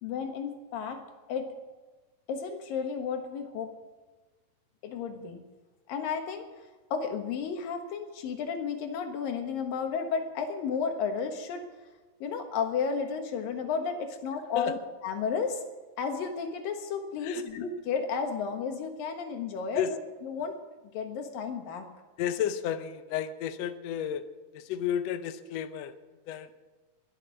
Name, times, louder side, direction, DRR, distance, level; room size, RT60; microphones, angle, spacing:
voice 1, 0.0-1.0 1.3-1.5 2.3-3.7 4.8-5.4 5.9-6.5 6.9-11.6 12.2-15.6 16.0-20.6 20.9-21.9, left 6 dB, 90° left, 5 dB, 3.2 m, -33 dB
voice 2, 22.2-24.2 24.5-25.9 26.3-26.5, left 9 dB, 75° left, 11 dB, 1.6 m, -32 dB
21.5 x 8.4 x 7.3 m, 1.2 s
omnidirectional pair, 3.9 m